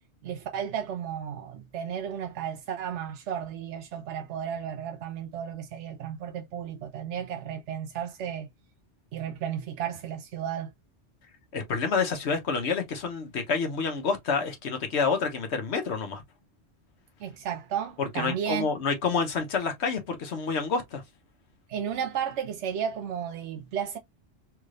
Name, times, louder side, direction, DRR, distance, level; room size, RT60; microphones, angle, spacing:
voice 1, 0.2-8.5 9.1-10.7 17.2-18.7 21.7-24.0, right 8 dB, 80° right, 0.9 m, -33 dB
voice 2, 11.5-16.2 18.0-21.0, left 5 dB, 70° left, 1.2 m, -28 dB
3.5 x 3.3 x 2.4 m
omnidirectional pair, 1.2 m